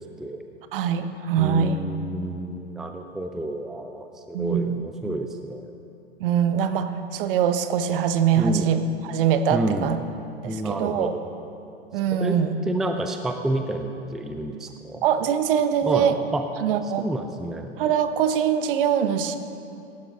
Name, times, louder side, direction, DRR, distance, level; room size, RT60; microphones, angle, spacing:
voice 1, 0.7-1.8 4.3-4.8 6.2-10.0 10.4-11.1 11.9-12.6 15.0-16.2 16.6-17.1 17.8-19.4, right 8 dB, 55° right, 9 dB, 1.0 m, -23 dB
voice 2, 1.4-5.7 8.4-8.7 9.5-9.9 10.4-11.2 12.1-12.4 12.7-15.0 15.8-16.4 16.8-17.7, right 1 dB, ahead, 5 dB, 0.5 m, -29 dB
17.5 x 11.5 x 3.7 m, 2.7 s
hypercardioid pair, 105°, 33 cm